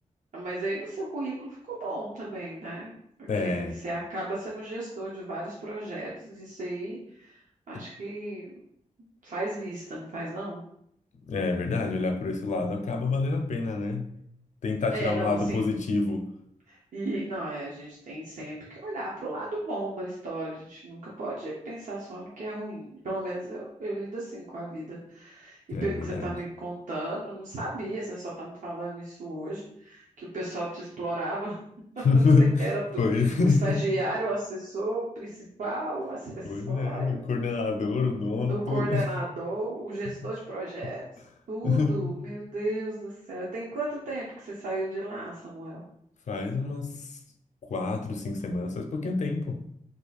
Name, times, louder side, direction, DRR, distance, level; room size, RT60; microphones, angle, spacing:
voice 1, 0.3-2.9 3.4-8.5 9.2-10.6 14.9-15.6 16.7-31.5 32.6-32.8 33.1-37.5 38.5-41.0 41.5-45.8, right 2 dB, 90° right, -6 dB, 0.8 m, -34 dB
voice 2, 3.3-3.8 7.7-7.8 11.3-14.1 14.6-16.3 25.7-26.4 32.0-32.7 33.0-33.8 36.4-39.1 40.1-40.3 40.8-40.9 41.6-42.2 46.3-47.2 47.6-49.6, left 3 dB, 70° left, 5 dB, 0.5 m, -26 dB
2.8 x 2.4 x 4.0 m, 0.71 s
wide cardioid pair, 135°, 13 cm